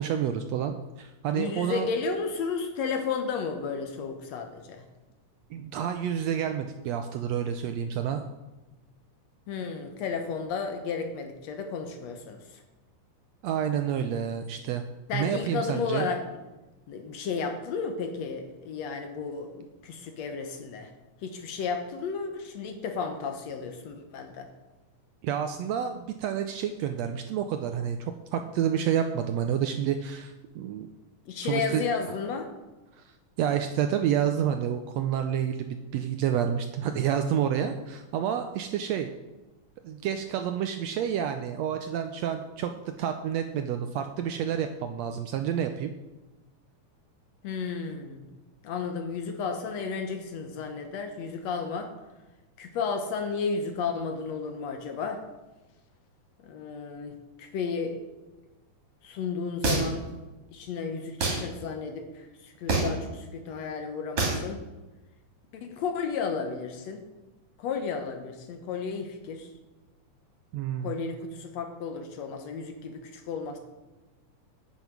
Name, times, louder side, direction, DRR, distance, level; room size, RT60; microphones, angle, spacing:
voice 1, 0.0-1.9 5.5-8.2 13.4-14.8 15.1-16.1 25.2-30.9 31.4-31.8 33.0-33.1 33.4-39.1 39.8-45.9 70.5-70.9, right 9 dB, 80° right, 7 dB, 1.6 m, -29 dB
voice 2, 1.3-4.9 9.5-12.6 15.1-16.4 16.9-20.9 21.2-24.5 31.3-32.5 47.4-48.3 48.6-51.9 52.6-55.2 56.4-58.0 59.0-60.2 60.5-64.6 65.5-67.0 67.6-69.5 70.8-73.6, left 5 dB, 65° left, 6 dB, 2.0 m, -33 dB
sound 1, 59.6-60.1 61.2-61.4 62.7-63.0 64.2-64.4, right 3 dB, 50° right, 3.7 m, -25 dB
9.3 x 9.0 x 6.1 m, 1.1 s
omnidirectional pair, 3.6 m